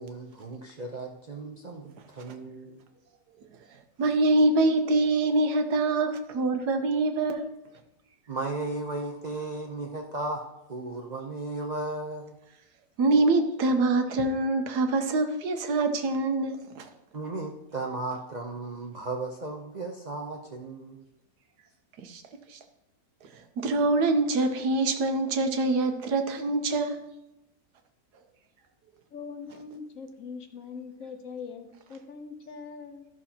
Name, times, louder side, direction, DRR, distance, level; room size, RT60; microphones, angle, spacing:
voice 1, 0.0-2.8 8.3-12.3 17.1-21.0, right 2 dB, 50° right, 0 dB, 0.5 m, -35 dB
voice 2, 4.0-7.5 13.0-16.9 22.0-22.2 22.5-22.6 23.3-27.1, right 2 dB, 85° right, 6 dB, 1.4 m, -25 dB
voice 3, 29.1-33.1, left 5 dB, 60° left, 6 dB, 1.1 m, -42 dB
13.0 x 6.3 x 2.9 m, 0.91 s
omnidirectional pair, 1.7 m